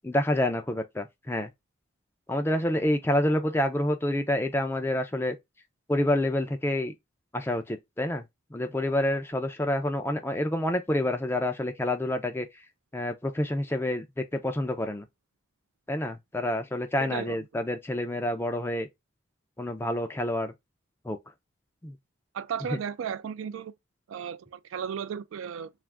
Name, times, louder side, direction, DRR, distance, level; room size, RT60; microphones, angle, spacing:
voice 1, 0.0-1.5 2.3-5.4 5.9-6.9 7.3-8.2 8.5-12.5 12.9-15.0 15.9-18.9 19.6-20.5 21.0-21.2 21.8-21.9 22.7-22.8, left 1 dB, 10° left, 0.3 m, -28 dB
voice 2, 17.0-17.6 22.3-23.7 24.1-25.7, right 7 dB, 80° right, 0.3 m, -35 dB
2.4 x 2.4 x 3.2 m
head